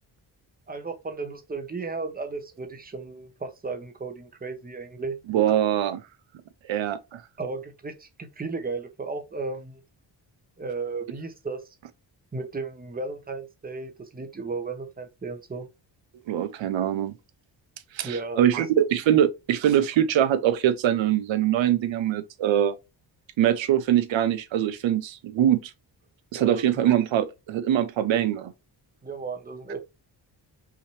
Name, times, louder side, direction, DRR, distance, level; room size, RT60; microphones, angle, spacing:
voice 1, 0.7-5.2 7.4-9.8 10.6-11.7 12.3-15.7 18.0-18.7 26.3-26.8 29.0-29.8, right 3 dB, 20° right, 1.0 m, -34 dB
voice 2, 5.3-6.0 6.7-7.2 16.3-17.1 17.9-22.8 23.4-25.7 26.3-28.5, right 11 dB, 80° right, 0.7 m, -23 dB
5.9 x 2.8 x 3.2 m
wide cardioid pair, 125°, 45 cm